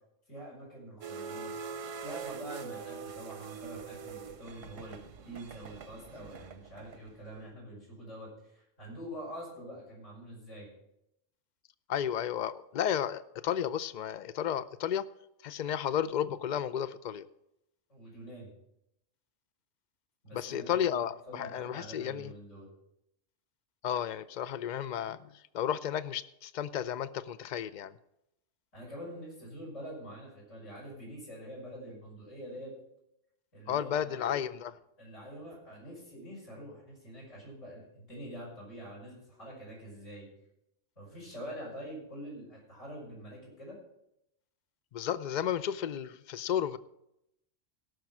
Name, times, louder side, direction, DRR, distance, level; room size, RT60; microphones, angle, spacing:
voice 1, 0.3-1.5 1.8-5.0 5.2-10.7 17.9-18.5 20.2-22.7 28.7-32.7 33.5-34.3 35.0-40.3 41.0-43.8, equal, 75° left, -4 dB, 6.1 m, -45 dB
sound 1, 1.0-7.3, right 6 dB, 80° right, 1.3 m, -43 dB
voice 2, 11.9-15.1 15.4-17.3 20.3-22.3 23.8-27.9 33.7-34.8 44.9-46.8, left 9 dB, 55° left, 14 dB, 0.5 m, -33 dB
17.5 x 6.2 x 6.0 m, 0.82 s
omnidirectional pair, 1.3 m